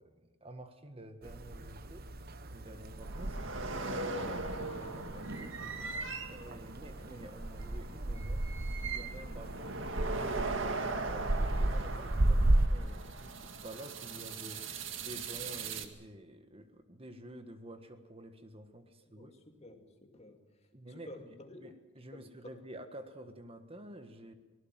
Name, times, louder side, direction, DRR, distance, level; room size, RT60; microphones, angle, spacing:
voice 1, 0.0-5.8 6.3-19.3 20.7-24.3, right 1 dB, 30° right, 8 dB, 1.5 m, -50 dB
sound 1, 1.2-12.7, right 1 dB, 50° right, 1.0 m, -34 dB
sound 2, 3.0-15.9, right 3 dB, 80° right, 2.0 m, -40 dB
voice 2, 19.0-20.7 21.1-21.6 22.1-22.6, left 2 dB, 35° left, 4 dB, 2.4 m, -52 dB
24.0 x 19.0 x 7.5 m, 1.2 s
head